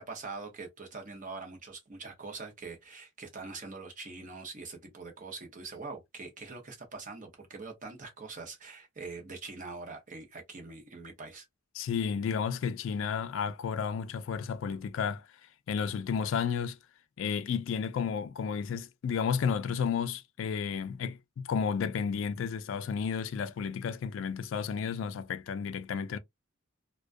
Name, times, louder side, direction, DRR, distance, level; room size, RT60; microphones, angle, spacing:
voice 1, 0.0-11.5, right 4 dB, 40° right, 0.7 m, -43 dB
voice 2, 11.7-15.3 15.7-16.8 17.2-26.2, left 6 dB, 65° left, 0.3 m, -32 dB
2.3 x 2.2 x 2.5 m
head